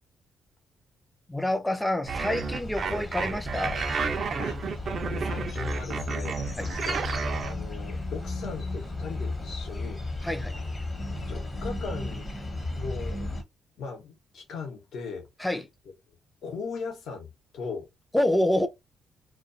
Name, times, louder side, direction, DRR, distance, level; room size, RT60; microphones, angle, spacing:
voice 1, 1.3-3.9 6.6-6.7 10.2-10.6 15.4-15.7 18.1-18.7, left 1 dB, 5° left, 0.5 m, -27 dB
sound 1, 2.0-13.4, left 2 dB, 30° left, 0.9 m, -34 dB
sound 2, 2.1-7.5, right 6 dB, 50° right, 0.4 m, -32 dB
voice 2, 4.4-10.0 10.5-10.7 11.3-13.4 13.8-15.3 16.4-17.3 17.5-17.9, left 4 dB, 70° left, 0.9 m, -39 dB
2.3 x 2.2 x 2.6 m
cardioid pair, 90°, 0 cm